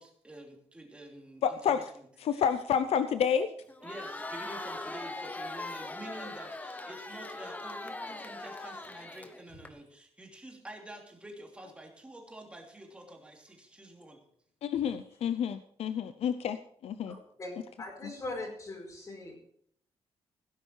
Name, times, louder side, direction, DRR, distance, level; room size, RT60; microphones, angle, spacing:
voice 1, 0.0-1.8 2.3-2.4 3.8-14.2, right 1 dB, 10° right, 1 dB, 2.9 m, -48 dB
voice 2, 1.4-1.9 2.2-3.5 14.6-17.2 18.0-18.1, left 8 dB, 75° left, 11 dB, 0.7 m, -29 dB
Crowd, 3.7-9.7, left 2 dB, 15° left, 0.9 m, -41 dB
voice 3, 17.4-19.4, left 2 dB, 30° left, 1 dB, 4.7 m, -40 dB
17.0 x 10.0 x 4.7 m, 0.65 s
wide cardioid pair, 175°, 10 cm